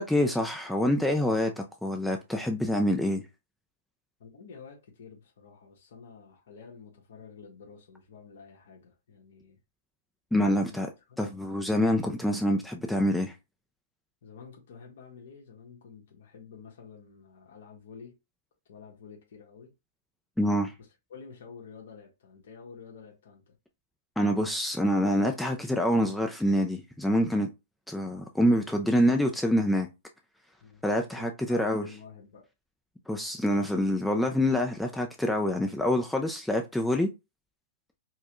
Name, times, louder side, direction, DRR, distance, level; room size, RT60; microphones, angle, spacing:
voice 1, 0.0-3.3 10.3-10.9 11.2-13.4 20.4-20.7 24.2-27.5 27.9-29.9 30.8-31.8 33.1-37.1, equal, 5° left, 0.4 m, -26 dB
voice 2, 4.2-9.6 10.7-10.8 11.1-11.2 14.2-18.2 18.7-19.7 21.1-23.6 30.6-30.8 31.1-32.5, left 6 dB, 65° left, 1.3 m, -49 dB
4.5 x 2.2 x 3.0 m
hypercardioid pair, 145°, 0 cm